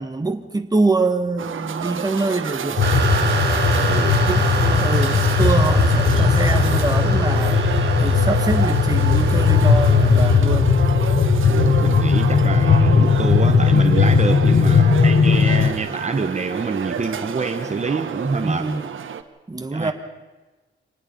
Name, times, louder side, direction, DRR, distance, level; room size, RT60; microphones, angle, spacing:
voice 1, 0.0-2.8 4.2-7.6 8.0-10.7 18.4-18.9 19.5-19.9, right 3 dB, 20° right, 6 dB, 1.6 m, -24 dB
sound 1, 1.4-19.2, right 7 dB, 80° right, 1.3 m, -29 dB
sound 2, 2.8-15.7, left 5 dB, 50° left, 1.5 m, -17 dB
sound 3, 2.8-10.4, right 4 dB, 55° right, 3.8 m, -28 dB
voice 2, 3.8-4.2 11.4-18.7 19.7-19.9, right 4 dB, 35° right, 6 dB, 1.4 m, -26 dB
26.0 x 19.5 x 5.5 m, 1.2 s
wide cardioid pair, 120°, 20 cm